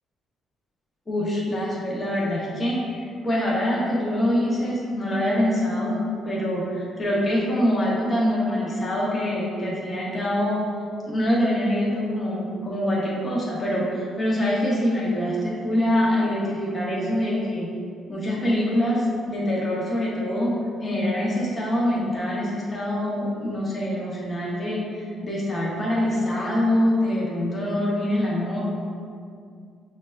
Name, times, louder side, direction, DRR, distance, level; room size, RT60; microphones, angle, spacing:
voice 1, 1.1-6.0 6.2-10.6 11.1-17.7 18.1-28.6, left 1 dB, 20° left, -5 dB, 0.6 m, -24 dB
6.3 x 2.1 x 2.3 m, 2.3 s
cardioid pair, 155°, 0 cm